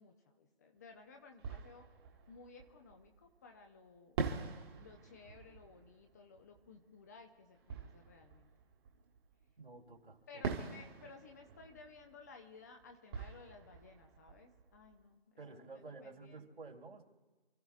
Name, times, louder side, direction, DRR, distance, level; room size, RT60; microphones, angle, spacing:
voice 1, 0.0-1.8 2.3-4.2 4.8-8.5 10.3-16.5, left 4 dB, 15° left, 4 dB, 0.7 m, -57 dB
Fireworks, 0.8-0.9 1.4-3.4 4.2-9.5 10.4-15.2, right 5 dB, 25° right, 1.4 m, -45 dB
voice 2, 9.6-10.6 15.4-17.1, right 3 dB, 75° right, 0 dB, 3.7 m, -52 dB
29.0 x 14.5 x 2.4 m, 1.3 s
figure-of-eight pair, 145°, 30 cm